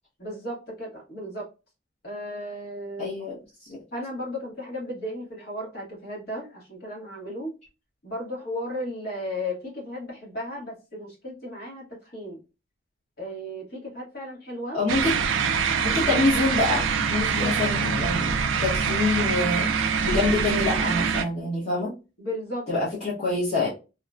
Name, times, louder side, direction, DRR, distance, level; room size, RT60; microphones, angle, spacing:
voice 1, 0.2-1.5 2.0-3.3 3.9-7.5 8.0-12.4 13.2-14.8 17.2-17.5 22.2-22.7, left 1 dB, 50° left, 1.3 m, -35 dB
voice 2, 3.0-3.4 14.7-15.2 15.8-19.7 20.0-22.0 22.7-23.7, left 3 dB, 35° left, 0.9 m, -26 dB
sound 1, 14.9-21.2, right 6 dB, 70° right, 0.3 m, -24 dB
3.0 x 2.1 x 2.3 m
head